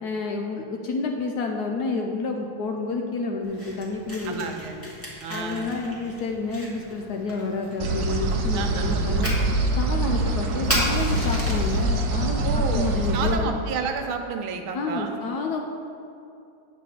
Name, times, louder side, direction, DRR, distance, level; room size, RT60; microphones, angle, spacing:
voice 1, 0.0-4.5 5.3-9.4 9.8-13.5 14.7-15.6, left 3 dB, 70° left, 2 dB, 1.0 m, -29 dB
Fire, 3.4-11.8, equal, 5° left, 1.6 m, -35 dB
voice 2, 4.2-4.8 5.2-5.7 8.5-9.0 12.4-15.2, right 5 dB, 90° right, 5 dB, 1.6 m, -31 dB
sound 1, 7.8-13.3, right 1 dB, 60° right, 0.9 m, -24 dB
9.0 x 4.2 x 6.3 m, 2.6 s
omnidirectional pair, 2.2 m